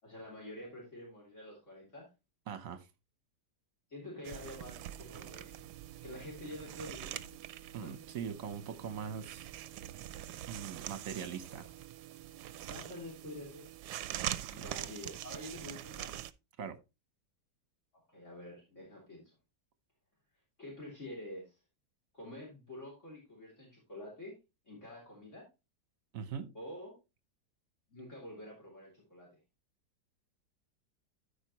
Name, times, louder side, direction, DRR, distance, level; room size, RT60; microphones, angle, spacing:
voice 1, 0.0-2.1 3.9-5.5 6.0-7.3 7.7-8.0 12.7-13.7 14.5-16.1 18.1-19.3 20.6-21.6 22.1-24.4 24.7-25.5 26.5-27.0 27.9-29.3, left 1 dB, 45° left, 3.6 m, -47 dB
voice 2, 2.5-2.9 7.7-9.5 10.5-11.7 14.6-14.7 16.6-16.8 26.1-26.5, right 7 dB, 55° right, 1.3 m, -41 dB
sound 1, 4.2-16.3, right 12 dB, 75° right, 1.1 m, -44 dB
13.0 x 5.1 x 3.0 m
omnidirectional pair, 1.8 m